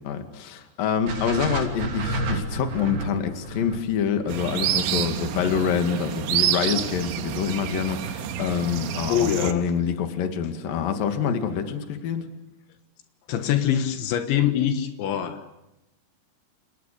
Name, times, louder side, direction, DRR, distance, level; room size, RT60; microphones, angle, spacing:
voice 1, 0.0-12.3, left 7 dB, 55° left, 6 dB, 3.5 m, -26 dB
sound 1, 1.1-5.2, right 1 dB, 55° right, 4.5 m, -31 dB
sound 2, 4.3-9.5, right 10 dB, 85° right, 3.7 m, -28 dB
voice 2, 9.1-9.7 13.3-15.4, left 10 dB, 80° left, 8 dB, 3.7 m, -24 dB
29.5 x 29.0 x 6.8 m, 0.94 s
omnidirectional pair, 5.3 m